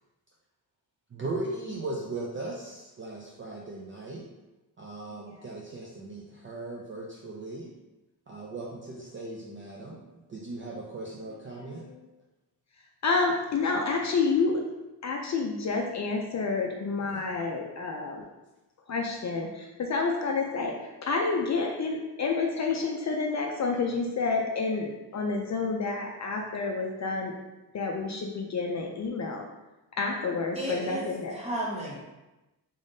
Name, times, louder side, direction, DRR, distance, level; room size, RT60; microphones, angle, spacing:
voice 1, 1.1-4.3 4.8-7.7 8.3-10.0 10.3-11.9 17.1-17.2, right 2 dB, 30° right, -3 dB, 0.4 m, -38 dB
voice 2, 13.0-14.6 15.0-18.2 18.9-27.3 27.7-29.5 30.0-31.3, left 4 dB, 45° left, 1 dB, 0.4 m, -29 dB
voice 3, 30.5-32.0, right 1 dB, 15° right, -4 dB, 1.0 m, -33 dB
3.7 x 3.5 x 2.6 m, 1.0 s
wide cardioid pair, 135°, 40 cm